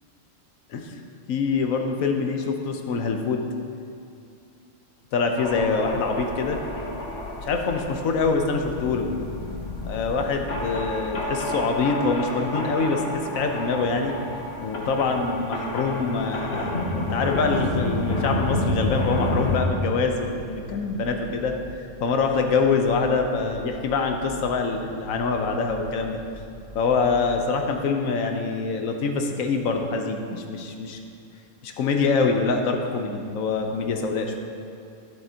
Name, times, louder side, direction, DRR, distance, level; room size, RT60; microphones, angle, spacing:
voice 1, 1.3-3.4 5.1-6.6 7.4-9.1 9.8-14.1 14.6-21.5 22.0-26.2 26.7-31.0 31.6-34.4, left 4 dB, 85° left, 4 dB, 1.1 m, -25 dB
sound 1, 5.4-19.6, left 1 dB, 55° left, 1.1 m, -30 dB
sound 2, 17.7-27.4, equal, 45° right, 1.6 m, -44 dB
10.5 x 7.7 x 2.8 m, 2.6 s
omnidirectional pair, 1.4 m